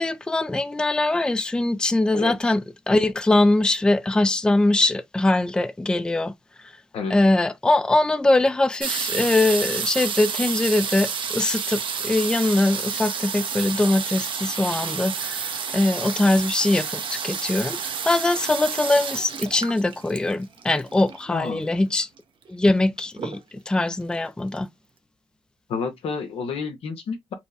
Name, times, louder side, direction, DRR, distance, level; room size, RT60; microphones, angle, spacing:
voice 1, 0.0-6.3 7.1-22.1 22.5-24.7, left 2 dB, 10° left, 0.4 m, -22 dB
voice 2, 2.1-2.5 6.9-7.2 21.3-21.7 25.7-27.3, left 5 dB, 85° left, 1.0 m, -30 dB
sound 1, 8.8-21.3 22.2-22.3 22.5-22.9 23.2-23.7 24.3-24.4 24.6-24.7, right 6 dB, 60° right, 0.7 m, -30 dB
4.4 x 2.1 x 2.7 m
cardioid pair, 80°, 10 cm